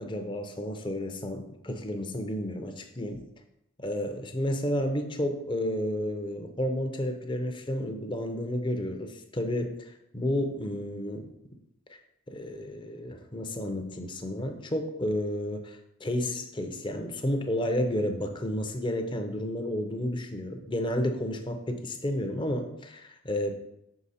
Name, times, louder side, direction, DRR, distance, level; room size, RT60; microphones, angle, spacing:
voice 1, 0.0-3.3 3.8-11.3 12.3-23.5, left 1 dB, 20° left, 5 dB, 0.6 m, -31 dB
5.9 x 4.9 x 4.2 m, 0.83 s
head